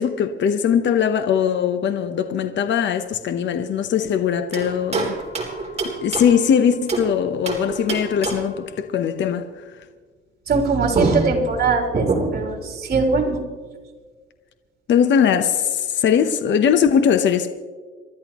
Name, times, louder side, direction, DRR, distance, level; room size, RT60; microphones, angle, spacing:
voice 1, 0.0-5.2 6.0-9.5 14.9-17.5, left 8 dB, 65° left, 1.0 m, -20 dB
sound 1, 4.5-7.1 7.5-8.6 10.6-10.7 10.9-12.6, right 3 dB, 30° right, 3.5 m, -26 dB
voice 2, 10.5-12.1 12.3-13.4, right 4 dB, 55° right, 3.7 m, -21 dB
27.0 x 13.0 x 3.1 m
cardioid pair, 90°, 20 cm